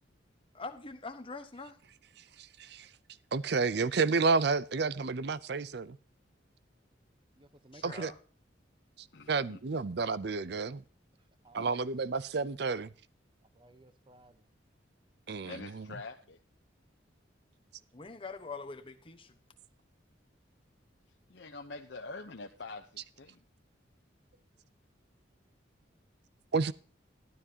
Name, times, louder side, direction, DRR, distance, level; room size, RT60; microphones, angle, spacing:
voice 1, 0.5-1.8 7.7-8.1 17.9-19.3, left 3 dB, 30° left, 1.2 m, -43 dB
voice 2, 2.4-2.9 3.3-6.0 7.8-8.1 9.0-10.8 11.5-12.9 15.3-15.9 26.5-26.7, right 4 dB, 60° right, 0.6 m, -31 dB
voice 3, 7.4-8.2 11.4-12.1 13.5-14.5, right 2 dB, 25° right, 0.9 m, -58 dB
voice 4, 9.1-9.6 11.6-11.7 15.4-16.4 21.3-23.4, left 3 dB, 65° left, 0.9 m, -45 dB
12.5 x 12.0 x 2.9 m
head